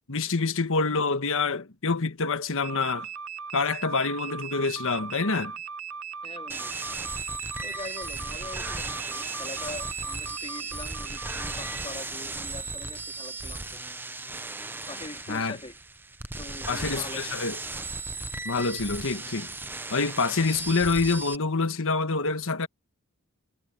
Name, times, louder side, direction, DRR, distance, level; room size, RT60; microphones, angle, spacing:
voice 1, 0.1-3.1 3.5-5.5 15.3-15.6 16.7-17.6 18.4-19.5 19.9-22.7, left 4 dB, 65° left, 1.4 m, -26 dB
sound 1, 2.6-11.9, right 7 dB, 75° right, 0.8 m, -38 dB
voice 2, 6.2-6.7 7.6-13.7 14.9-15.8 16.4-17.5, left 2 dB, 25° left, 3.4 m, -43 dB
sound 2, 6.5-21.4, right 3 dB, 10° right, 0.6 m, -36 dB
head